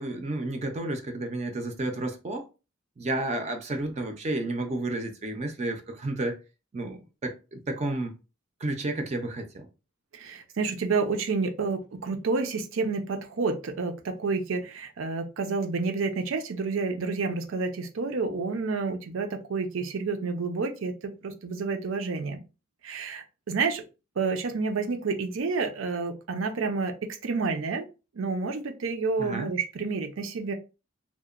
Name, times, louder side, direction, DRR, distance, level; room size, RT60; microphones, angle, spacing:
voice 1, 0.0-2.4 3.0-6.4 6.7-8.1 8.6-9.7 29.2-29.5, right 2 dB, 35° right, 0.4 m, -31 dB
voice 2, 10.1-22.4 22.8-23.8 24.2-27.9 28.1-30.5, right 4 dB, 90° right, 0.5 m, -29 dB
2.8 x 2.1 x 2.3 m
head